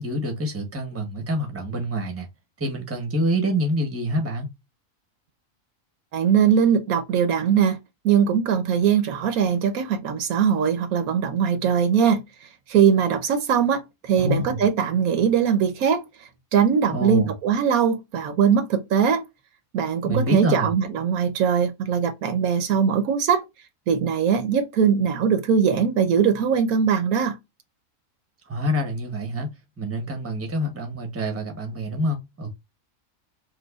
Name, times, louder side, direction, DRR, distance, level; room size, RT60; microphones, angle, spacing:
voice 1, 0.0-2.3 2.6-4.5 14.1-14.6 16.9-17.3 20.0-20.7 28.5-29.5 29.8-32.6, equal, 10° right, 0.8 m, -26 dB
voice 2, 6.1-7.8 8.0-12.2 12.7-16.0 16.5-19.2 19.7-23.4 23.9-27.4, right 7 dB, 85° right, 1.2 m, -21 dB
4.7 x 2.2 x 2.3 m
omnidirectional pair, 1.5 m